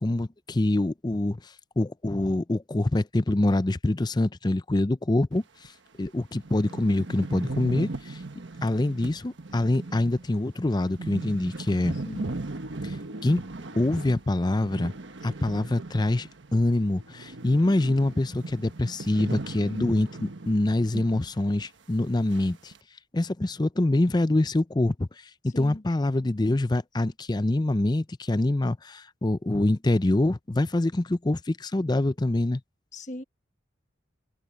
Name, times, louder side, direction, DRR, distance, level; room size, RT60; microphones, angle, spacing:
voice 1, 0.0-1.4 1.8-5.7 6.0-8.2 8.6-12.0 12.8-13.0 13.2-13.4 13.7-14.9 15.2-22.7 23.1-25.1 25.4-32.6, left 2 dB, 20° left, 0.5 m, -25 dB
sound 1, 5.6-5.7 6.1-6.2 6.3-16.6 16.8-21.3 21.6-21.7 22.3-22.8, right 2 dB, 70° right, 1.3 m, -38 dB
voice 2, 11.9-12.3 25.4-25.8 32.9-33.2, left 1 dB, 40° left, 1.3 m, -39 dB
head